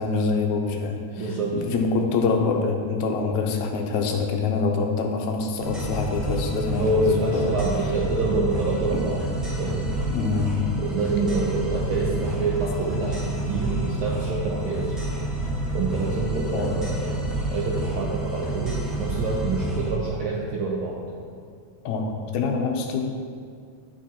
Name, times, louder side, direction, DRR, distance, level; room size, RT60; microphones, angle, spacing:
voice 1, 0.0-7.6 8.9-9.0 10.1-10.7 16.5-16.7 21.9-23.2, left 4 dB, 90° left, 3 dB, 2.0 m, -25 dB
voice 2, 1.2-1.5 6.8-9.2 9.6-9.9 10.8-14.9 15.7-17.2 17.5-21.0, right 2 dB, 80° right, -4 dB, 1.2 m, -26 dB
sound 1, 5.6-19.9, right 1 dB, ahead, 0.4 m, -29 dB
10.0 x 6.2 x 2.8 m, 2.2 s
omnidirectional pair, 3.3 m